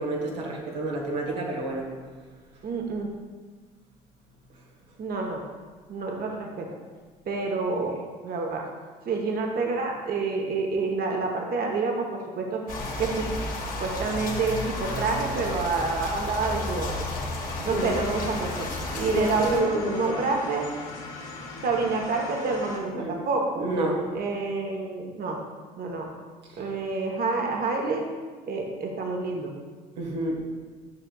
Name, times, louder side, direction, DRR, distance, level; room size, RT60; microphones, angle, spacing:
voice 1, 0.0-1.9 17.6-17.9 18.9-20.2 22.9-23.2 23.6-24.0 26.5-26.6 30.0-30.4, right 1 dB, 85° right, -3 dB, 1.2 m, -29 dB
voice 2, 2.6-3.1 5.0-5.4 5.9-6.7 7.3-7.9 8.2-8.7 9.0-12.6 13.0-13.3 13.8-16.9 17.6-18.7 18.9-20.7 21.6-23.6 24.1-25.4 25.8-26.1 26.6-28.1 28.5-29.5, right 3 dB, 45° right, 1 dB, 1.0 m, -28 dB
sound 1, 12.7-19.6, left 2 dB, 40° left, 1.5 m, -32 dB
sound 2, 17.7-22.8, left 3 dB, 70° left, 1.4 m, -39 dB
9.6 x 6.2 x 2.3 m, 1.5 s
hypercardioid pair, 55°, 21 cm